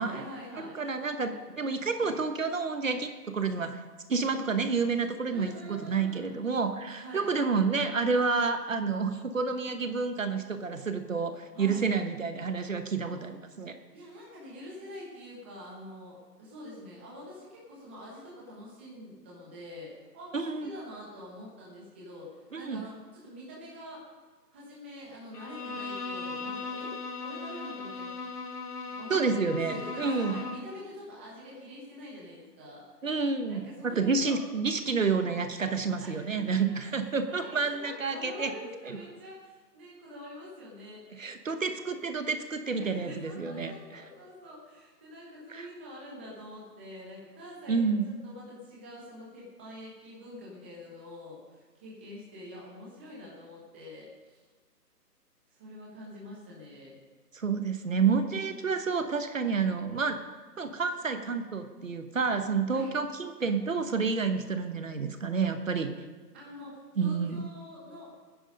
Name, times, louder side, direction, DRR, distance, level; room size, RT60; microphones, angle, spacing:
voice 1, 0.0-0.7 5.3-6.5 7.0-7.3 11.5-11.8 13.0-13.2 13.9-24.0 24.5-28.1 29.0-29.2 29.5-32.8 33.5-34.4 35.6-35.7 36.0-36.8 37.3-41.0 42.8-47.9 48.2-54.4 55.6-57.0 62.7-62.9 66.3-68.1, left 1 dB, 5° right, -6 dB, 1.2 m, -46 dB
voice 2, 0.6-3.8 4.1-13.7 20.3-20.7 22.5-22.8 29.1-30.4 33.0-38.5 41.2-44.0 45.5-45.7 47.7-48.0 57.3-60.2 60.6-65.9 67.0-67.4, right 4 dB, 50° right, 8 dB, 1.2 m, -29 dB
Bowed string instrument, 25.3-30.8, left 4 dB, 70° left, 1.6 m, -38 dB
17.5 x 10.0 x 5.4 m, 1.3 s
hypercardioid pair, 165°, 49 cm